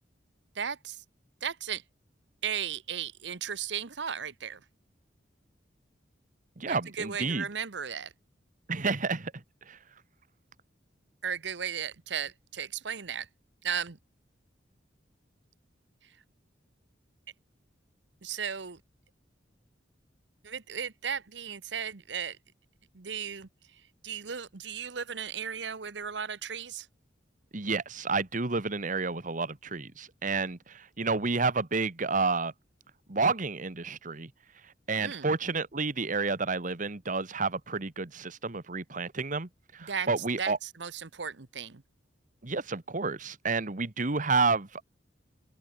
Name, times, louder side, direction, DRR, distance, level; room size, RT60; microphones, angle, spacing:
voice 1, 0.5-1.0 1.4-1.8 2.4-4.6 6.6-8.1 11.2-13.3 13.6-14.0 16.0-16.2 18.2-18.8 20.4-22.4 22.9-26.9 35.0-35.3 39.8-41.8, right 7 dB, 70° right, 1.0 m, -36 dB
voice 2, 6.6-7.5 8.7-9.3 9.7-9.8 27.5-32.5 33.1-34.3 34.9-40.6 42.4-44.8, right 4 dB, 45° right, 1.4 m, -30 dB
open air
head